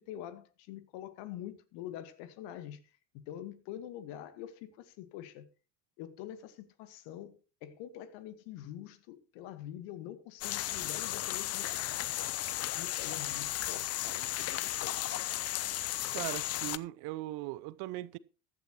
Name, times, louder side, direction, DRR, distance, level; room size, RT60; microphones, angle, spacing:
voice 1, 0.0-2.8 3.1-5.5 6.0-12.3 12.6-14.9, left 11 dB, 60° left, 1.5 m, -45 dB
sound 1, 10.4-16.8, left 14 dB, 30° left, 0.5 m, -35 dB
voice 2, 16.1-18.2, right 18 dB, 50° right, 0.7 m, -39 dB
14.5 x 11.5 x 2.9 m
figure-of-eight pair, 65°, 49 cm